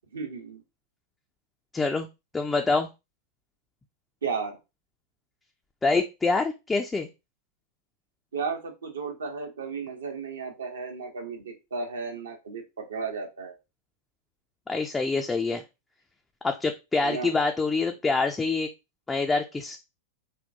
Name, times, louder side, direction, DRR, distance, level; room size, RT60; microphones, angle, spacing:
voice 1, 0.1-0.6 4.2-4.6 8.3-13.5 17.0-17.3, right 5 dB, 70° right, 3 dB, 0.8 m, -34 dB
voice 2, 1.7-2.1 2.3-2.9 5.8-7.1 14.7-15.6 16.4-18.7 19.1-19.8, left 3 dB, 10° left, 3 dB, 0.4 m, -26 dB
3.6 x 2.2 x 2.7 m, 0.25 s
figure-of-eight pair, 90°, 0 cm